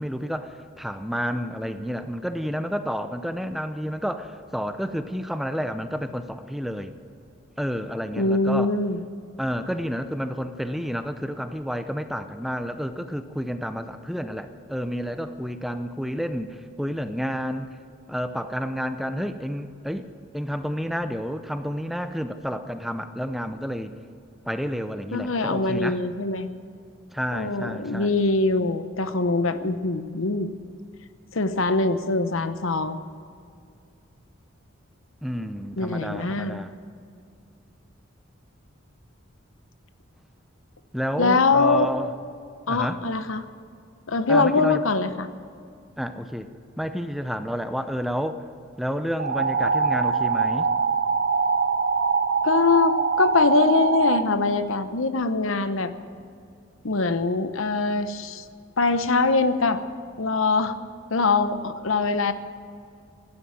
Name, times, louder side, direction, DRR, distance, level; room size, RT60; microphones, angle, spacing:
voice 1, 0.0-6.9 7.6-8.7 9.4-17.8 18.1-20.1 20.3-24.0 24.5-26.0 27.1-28.2 35.2-36.7 40.9-42.1 42.7-43.0 44.3-44.8 46.0-46.5 46.8-48.4 48.8-50.7, equal, ahead, 9 dB, 0.6 m, -30 dB
voice 2, 8.1-9.0 25.1-26.5 27.3-30.5 31.3-33.0 35.8-36.6 41.2-41.9 42.7-43.4 44.1-45.3 52.4-55.9 56.8-58.4 58.8-59.8 60.2-60.8 61.1-62.3, left 3 dB, 80° left, 11 dB, 0.9 m, -23 dB
sound 1, 49.2-54.2, right 5 dB, 50° right, 0.8 m, -23 dB
16.0 x 12.0 x 7.5 m, 2.5 s
head